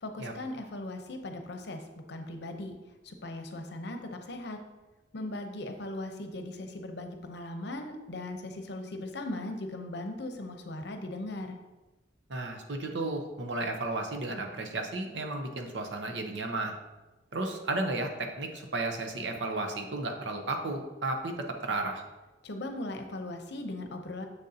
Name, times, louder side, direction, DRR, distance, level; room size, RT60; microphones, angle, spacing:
voice 1, 0.0-2.8 3.0-4.6 5.1-11.6 22.4-24.3, left 1 dB, 65° left, 5 dB, 0.8 m, -38 dB
voice 2, 12.3-16.7 17.3-21.3 21.6-22.0, right 2 dB, 75° right, 4 dB, 0.9 m, -33 dB
7.1 x 6.6 x 2.8 m, 1.1 s
head